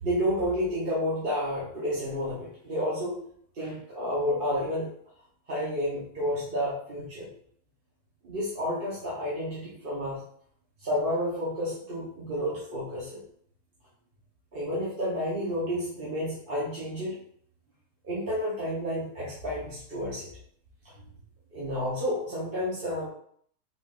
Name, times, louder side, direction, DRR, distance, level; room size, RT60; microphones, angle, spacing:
voice 1, 0.0-3.2 3.5-4.9 5.5-7.3 8.2-10.2 10.8-13.2 14.5-17.2 18.0-20.3 21.5-23.1, equal, 40° right, -7 dB, 1.0 m, -30 dB
4.2 x 3.8 x 2.4 m, 0.62 s
omnidirectional pair, 1.8 m